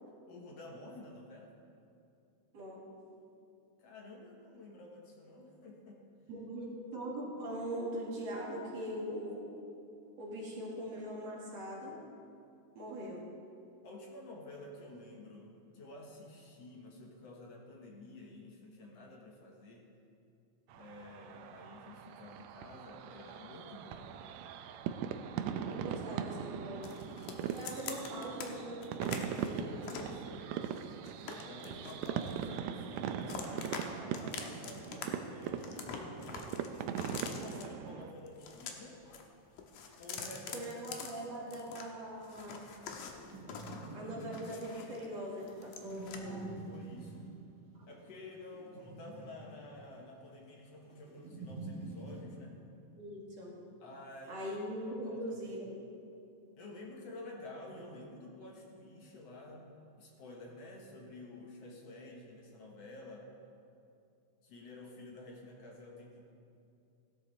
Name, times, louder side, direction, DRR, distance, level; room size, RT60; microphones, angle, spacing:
voice 1, 0.3-1.5 3.8-6.0 13.8-19.9 20.7-24.1 29.6-30.5 31.2-36.5 37.2-39.0 40.0-41.5 41.9-42.0 46.1-47.4 47.9-52.6 53.8-54.4 54.8-55.6 56.6-59.7 60.0-63.3 64.4-66.2, left 2 dB, 60° left, 0 dB, 2.3 m, -51 dB
voice 2, 2.5-3.0 6.3-9.5 10.2-11.9 12.7-13.2 25.7-26.9 27.4-29.7 40.5-42.7 43.9-46.4 52.9-53.6 54.3-55.8, equal, 60° right, -4 dB, 3.3 m, -41 dB
sound 1, 20.7-38.1, right 8 dB, 75° right, 1.7 m, -40 dB
sound 2, 26.8-28.5 28.8-30.1 30.6-32.7 33.0-33.9 34.1-35.0 35.3-37.6 38.3-39.2 39.5-41.9 42.2-45.1 45.4-46.2, left 6 dB, 85° left, 2.5 m, -45 dB
sound 3, 41.6-52.2, right 2 dB, 10° right, 3.1 m, -48 dB
16.5 x 11.5 x 4.1 m, 2.6 s
omnidirectional pair, 3.4 m